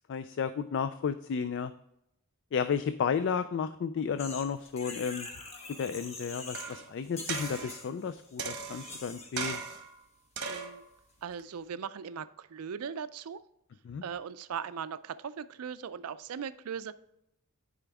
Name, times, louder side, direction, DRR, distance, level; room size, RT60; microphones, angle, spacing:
voice 1, 0.1-1.7 2.5-5.3 5.8-9.6 13.8-14.0, left 6 dB, 55° left, 12 dB, 0.3 m, -32 dB
sound 1, 4.2-6.8 7.0-9.6, left 3 dB, 30° left, 1.1 m, -44 dB
sound 2, 6.5-6.9 7.3-7.8 8.4-9.0 9.4-9.9 10.4-10.8 11.4-11.5, right 5 dB, 50° right, 1.2 m, -37 dB
voice 2, 10.4-10.8 11.2-13.4 14.0-16.9, right 7 dB, 85° right, 14 dB, 0.4 m, -39 dB
10.0 x 5.0 x 3.5 m, 0.81 s
head